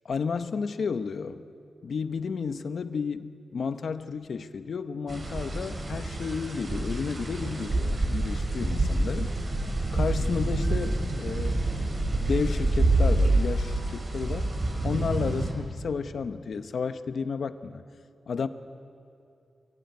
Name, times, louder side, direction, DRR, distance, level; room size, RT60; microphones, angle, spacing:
voice 1, 0.0-1.4 1.8-9.3 9.9-11.7 12.2-14.6 14.8-17.8 18.3-18.5, left 5 dB, 75° left, 10 dB, 0.9 m, -32 dB
sound 1, 5.1-15.5, right 2 dB, 45° right, 4.2 m, -27 dB
27.0 x 16.5 x 9.5 m, 2.6 s
wide cardioid pair, 145°, 0 cm